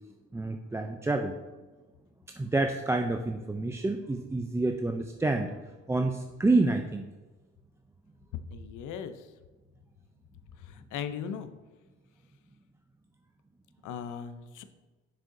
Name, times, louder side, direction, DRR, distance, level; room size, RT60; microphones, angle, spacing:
voice 1, 0.3-1.3 2.4-5.5 5.9-7.0, right 2 dB, 10° right, 4 dB, 0.3 m, -28 dB
voice 2, 8.3-9.3 10.6-11.5 13.8-14.6, left 7 dB, 80° left, 10 dB, 0.6 m, -38 dB
6.5 x 6.4 x 2.6 m, 1.2 s
cardioid pair, 90°, 30 cm